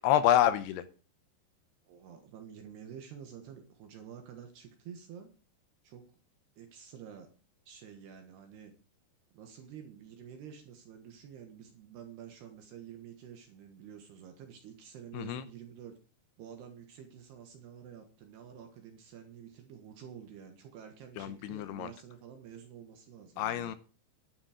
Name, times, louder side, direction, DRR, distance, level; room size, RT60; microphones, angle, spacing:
voice 1, 0.0-0.9 15.1-15.5 21.2-21.9 23.4-23.8, left 11 dB, 80° left, 12 dB, 2.4 m, -27 dB
voice 2, 1.8-5.3 5.8-6.1 6.6-7.3 7.7-8.7 9.3-15.9 16.4-23.7, right 8 dB, 70° right, 5 dB, 3.2 m, -49 dB
11.5 x 9.4 x 5.0 m, 0.36 s
omnidirectional pair, 5.4 m